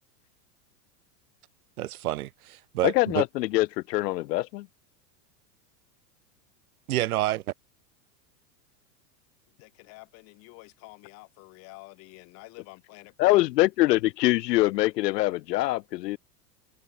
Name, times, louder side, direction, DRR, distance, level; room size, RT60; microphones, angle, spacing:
voice 1, 1.8-3.2 6.9-7.4, right 15 dB, 60° right, 1.8 m, -28 dB
voice 2, 2.8-4.7 13.2-16.2, left 18 dB, 75° left, 0.6 m, -24 dB
voice 3, 9.6-13.4, left 25 dB, 30° left, 4.7 m, -48 dB
supercardioid pair, 180°, 49 cm